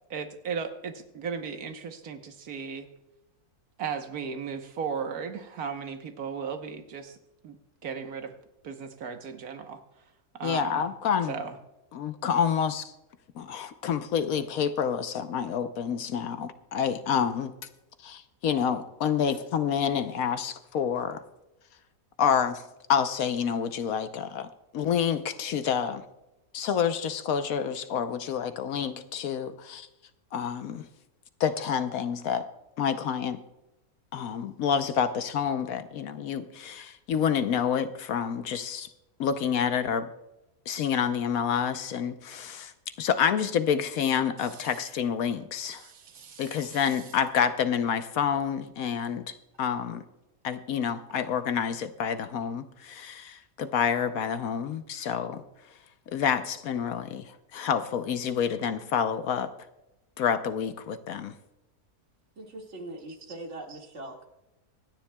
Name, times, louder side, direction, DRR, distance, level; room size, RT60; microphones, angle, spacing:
voice 1, 0.1-2.9 3.8-7.2 7.4-8.3 8.6-9.8 10.3-10.9 11.3-11.6 45.7-46.9, right 6 dB, 70° right, 7 dB, 1.5 m, -36 dB
voice 2, 10.4-11.4 11.9-12.9 13.3-17.5 18.0-21.2 22.2-22.6 22.9-26.0 26.5-29.9 30.3-30.9 31.4-32.5 32.8-33.4 34.1-38.9 39.2-40.1 40.7-45.9 46.4-50.0 50.4-55.4 56.1-59.5 60.2-61.3, left 7 dB, 70° left, 10 dB, 1.1 m, -28 dB
voice 3, 62.4-64.2, right 2 dB, 50° right, 1 dB, 2.3 m, -41 dB
25.5 x 10.0 x 2.2 m, 0.96 s
omnidirectional pair, 1.6 m